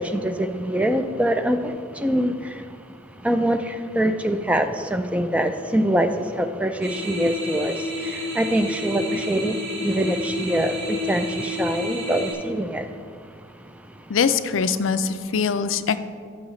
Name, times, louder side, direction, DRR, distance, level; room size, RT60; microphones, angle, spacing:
voice 1, 0.0-2.7 3.2-12.9, right 1 dB, 5° right, 7 dB, 0.3 m, -24 dB
sound 1, 6.8-12.3, left 1 dB, 65° right, 1.8 m, -29 dB
voice 2, 14.1-16.0, left 6 dB, 85° left, 12 dB, 0.4 m, -22 dB
14.0 x 6.3 x 3.1 m, 2.2 s
head